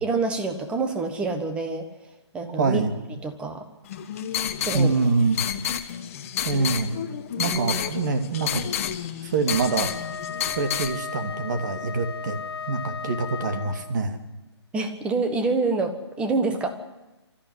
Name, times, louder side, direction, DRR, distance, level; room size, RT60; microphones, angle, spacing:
voice 1, 0.0-1.9 2.3-2.8 3.2-3.6 4.7-4.9 7.3-7.8 14.7-16.7, right 3 dB, 5° right, 7 dB, 1.3 m, -27 dB
voice 2, 2.6-2.9 4.7-5.4 6.4-7.0 7.4-8.6 9.2-9.9 10.5-12.4 12.7-14.2, right 4 dB, 40° right, 6 dB, 2.5 m, -25 dB
sound 1, 3.9-10.9, left 10 dB, 30° left, 1.3 m, -30 dB
Wind instrument woodwind instrument, 9.5-14.0, left 6 dB, 60° left, 0.9 m, -35 dB
24.5 x 14.0 x 9.8 m, 1.1 s
hypercardioid pair, 160°, 15 cm